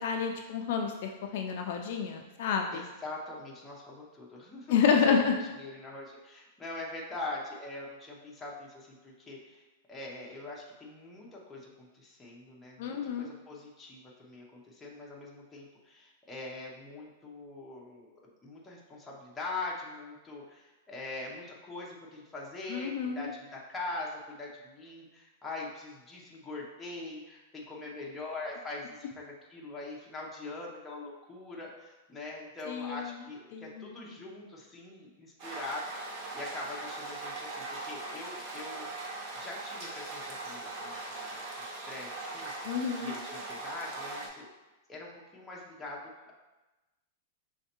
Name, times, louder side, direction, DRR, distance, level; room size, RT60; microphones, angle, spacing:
voice 1, 0.0-2.8 4.7-5.4 12.8-13.3 22.7-23.3 32.7-33.1 33.5-33.9 42.6-43.1, left 6 dB, 50° left, 3 dB, 0.4 m, -29 dB
voice 2, 2.7-18.1 18.4-44.5 44.9-46.3, left 2 dB, 5° left, -4 dB, 0.6 m, -43 dB
sound 1, 35.4-44.3, right 2 dB, 35° right, 0.7 m, -40 dB
5.4 x 3.2 x 2.9 m, 1.1 s
supercardioid pair, 170°, 0 cm